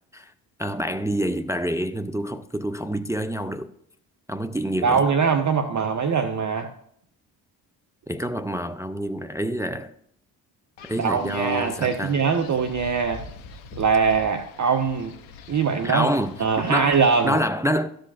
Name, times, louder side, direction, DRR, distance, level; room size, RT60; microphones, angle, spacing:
voice 1, 0.6-3.7 4.3-5.0 8.1-9.9 10.8-12.2 15.8-17.0 17.2-17.9, equal, 5° right, 0.5 m, -27 dB
voice 2, 4.8-6.7 11.0-13.2 13.7-15.1 15.5-16.1 16.4-17.4, right 5 dB, 35° right, 0.9 m, -22 dB
Wind, 10.8-17.3, left 4 dB, 80° left, 1.0 m, -44 dB
14.0 x 5.2 x 2.4 m
hypercardioid pair, 50°, 49 cm